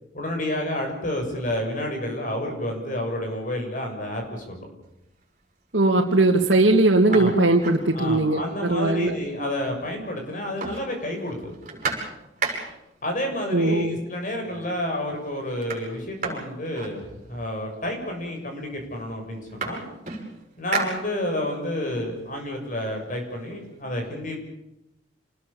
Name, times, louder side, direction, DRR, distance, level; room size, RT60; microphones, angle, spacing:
voice 1, 0.1-4.7 7.1-7.4 7.9-11.5 13.0-17.0 17.3-19.8 20.6-24.4, left 1 dB, 45° left, 3 dB, 6.7 m, -30 dB
sound 1, 5.0-5.4 5.9-6.0 6.4-8.5 8.8-8.9 9.1-10.0 10.2-13.0 13.9-14.0 14.4-14.9 15.1-17.6 18.4-18.5 18.8-21.6 22.0-23.7, right 4 dB, 40° right, 6.9 m, -35 dB
voice 2, 5.7-9.1 13.5-14.0, right 2 dB, 80° right, -1 dB, 2.4 m, -19 dB
28.0 x 20.0 x 7.2 m, 0.88 s
head